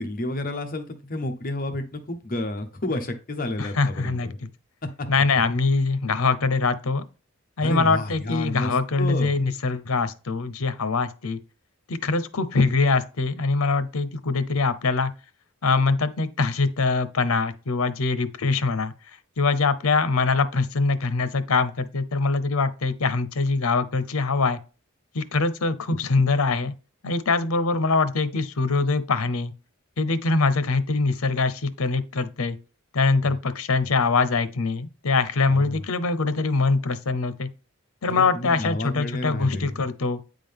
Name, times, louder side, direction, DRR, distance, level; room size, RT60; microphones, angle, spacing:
voice 1, 0.0-4.4 5.0-5.1 7.6-9.3 33.2-33.3 35.5-35.8 38.1-39.7, left 1 dB, 40° left, 0.9 m, -30 dB
voice 2, 3.6-4.3 5.1-7.0 7.6-11.4 11.9-15.1 15.6-18.9 19.4-24.6 25.1-26.7 27.0-29.5 30.0-32.6 32.9-37.5 38.0-40.2, left 3 dB, 85° left, 0.7 m, -23 dB
9.2 x 3.8 x 3.5 m
head